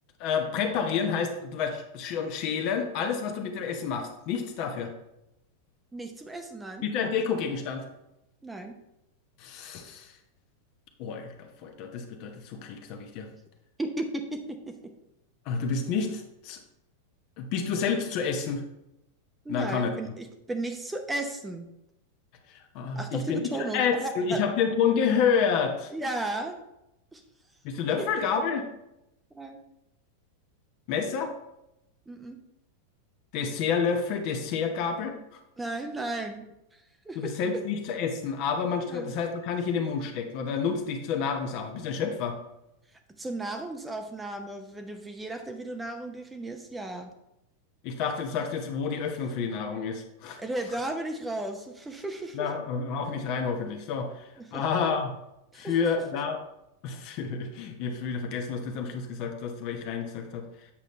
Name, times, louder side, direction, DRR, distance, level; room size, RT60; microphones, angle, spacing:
voice 1, 0.2-4.9 6.8-7.9 9.4-10.1 11.0-13.3 15.5-16.6 17.4-18.6 19.5-20.1 22.5-25.9 27.6-28.6 30.9-31.3 33.3-35.4 37.1-42.4 47.8-50.4 52.3-55.2 55.5-56.4 56.8-60.5, left 6 dB, 45° left, 5 dB, 1.1 m, -29 dB
voice 2, 5.9-6.8 8.4-8.7 13.8-14.9 19.4-21.7 22.9-24.4 25.9-26.6 27.1-27.2 28.0-28.1 29.3-29.6 32.1-32.4 35.6-36.4 37.1-37.3 38.9-39.1 43.2-47.1 50.4-52.5 54.4-54.6 55.5-55.7, right 2 dB, 10° right, 5 dB, 0.8 m, -35 dB
8.5 x 6.5 x 3.2 m, 0.87 s
figure-of-eight pair, 90°, 0 cm